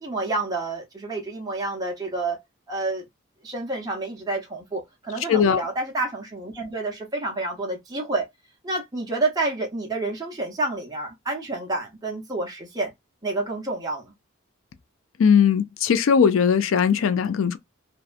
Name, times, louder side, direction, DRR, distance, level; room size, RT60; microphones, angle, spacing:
voice 1, 0.0-2.4 2.7-3.0 3.4-8.2 8.6-12.9 13.2-14.1, right 2 dB, 20° right, 0.7 m, -29 dB
voice 2, 5.3-5.6 15.2-17.6, left 7 dB, 70° left, 0.4 m, -19 dB
2.7 x 2.2 x 2.4 m
head